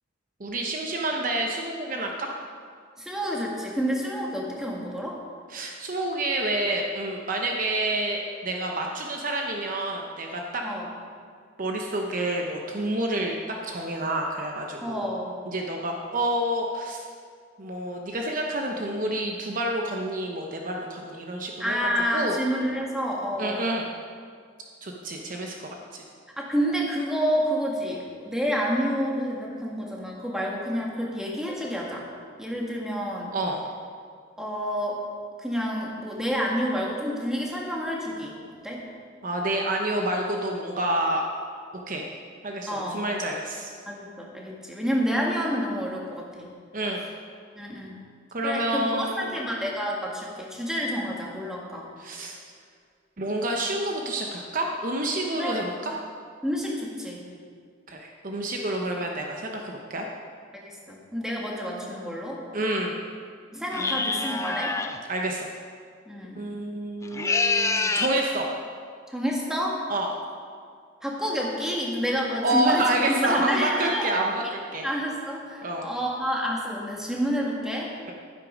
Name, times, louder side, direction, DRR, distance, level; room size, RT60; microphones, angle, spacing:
voice 1, 0.4-2.3 5.5-10.6 11.6-13.3 13.6-15.1 15.5-17.0 17.6-21.8 22.1-22.4 23.4-23.9 24.8-26.0 33.3-33.6 39.2-41.2 41.9-42.1 42.4-43.7 46.7-47.0 48.3-49.4 52.0-52.4 53.2-56.0 57.9-60.1 62.5-63.0 63.8-64.4 65.1-65.5 66.4-68.5 69.9-70.1 72.4-74.8 75.6-75.9, right 1 dB, 40° right, 1 dB, 0.8 m, -28 dB
voice 2, 3.0-5.2 10.6-10.9 14.8-15.4 21.6-23.6 26.4-32.1 32.4-33.3 34.4-35.0 35.4-38.3 38.6-38.9 42.7-43.0 43.9-46.5 47.6-48.0 48.4-51.9 55.4-55.6 56.4-57.2 60.5-62.4 63.5-64.8 66.1-66.4 69.1-69.8 71.0-74.1 74.8-77.9, equal, 5° right, -3 dB, 1.7 m, -29 dB
sound 1, 63.7-65.0 67.0-68.2, left 3 dB, 15° left, 0.5 m, -26 dB
12.0 x 9.8 x 5.2 m, 2.1 s
head